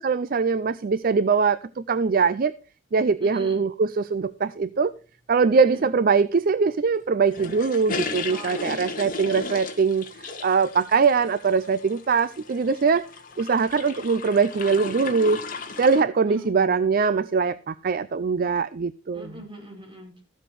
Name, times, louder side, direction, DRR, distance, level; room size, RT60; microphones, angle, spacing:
voice 1, 0.0-2.5 2.9-4.9 5.3-13.0 13.4-15.4 15.8-19.2, right 5 dB, 50° right, 15 dB, 0.4 m, -22 dB
voice 2, 3.2-3.6 5.5-5.9 8.3-9.4 16.2-16.9 19.1-20.2, right 1 dB, 25° right, -1 dB, 5.7 m, -42 dB
sound 1, 7.3-16.0, left 4 dB, 45° left, 1.7 m, -35 dB
14.0 x 7.7 x 4.7 m, 0.35 s
head